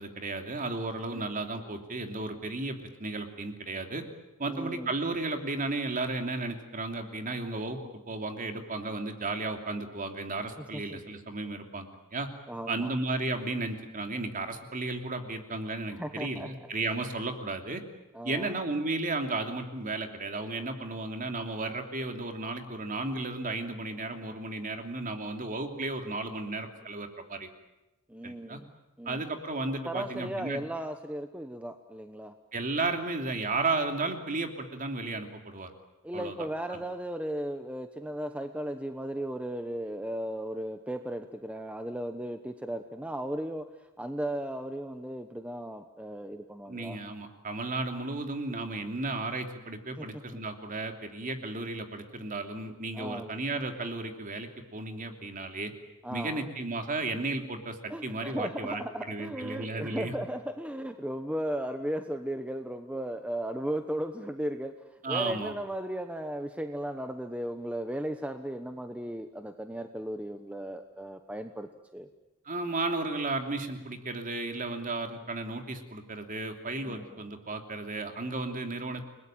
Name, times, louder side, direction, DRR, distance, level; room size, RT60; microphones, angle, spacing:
voice 1, 0.0-4.1 4.4-7.8 8.1-12.3 12.7-17.8 18.2-27.5 28.2-28.6 29.0-30.6 32.5-35.7 36.1-36.3 36.7-36.8 46.7-55.7 56.1-58.8 59.1-60.1 65.0-65.6 72.4-79.0, right 2 dB, 40° right, 5 dB, 2.9 m, -34 dB
voice 2, 4.5-4.9 10.7-11.0 12.5-12.9 15.9-16.5 18.1-18.6 28.1-28.7 29.0-29.2 29.8-32.3 36.0-47.0 50.0-50.4 52.9-53.3 56.0-56.4 57.9-72.1 76.9-77.2, right 1 dB, 5° right, 7 dB, 1.0 m, -36 dB
30.0 x 20.5 x 9.0 m, 1.0 s
head